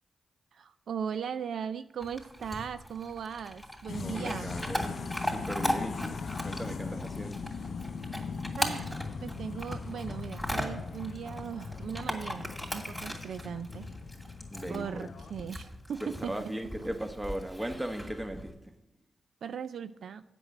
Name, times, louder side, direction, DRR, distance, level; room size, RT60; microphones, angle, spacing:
voice 1, 0.5-4.5 8.6-13.9 14.7-16.5 16.8-16.9 19.4-20.2, right 7 dB, 80° right, 0.3 m, -38 dB
Chewing mastication / Dog, 2.0-18.5, equal, ahead, 2.6 m, -39 dB
sound 1, 3.9-15.5, left 5 dB, 70° left, 0.5 m, -40 dB
voice 2, 4.0-7.4 14.5-15.1 16.0-18.7, right 1 dB, 15° right, 1.3 m, -38 dB
7.9 x 6.1 x 7.9 m
cardioid pair, 50°, 0 cm